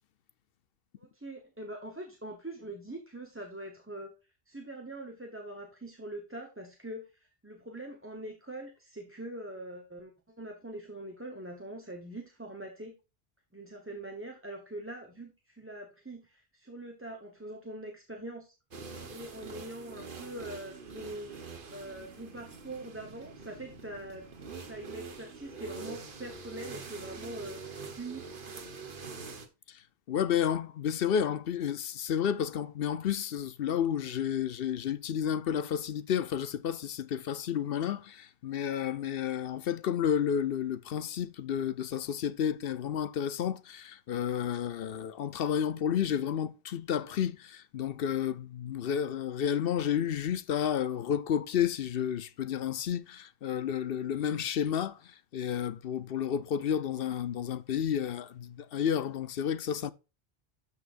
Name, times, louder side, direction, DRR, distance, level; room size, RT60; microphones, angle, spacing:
voice 1, 1.0-4.1 4.5-12.9 13.5-18.5 19.1-24.3 24.7-28.5, right 1 dB, 15° right, 1.1 m, -43 dB
sound 1, 18.7-29.5, right 4 dB, 60° right, 1.4 m, -45 dB
voice 2, 30.1-59.9, left 9 dB, 70° left, 0.8 m, -31 dB
12.5 x 5.7 x 2.5 m
omnidirectional pair, 1.0 m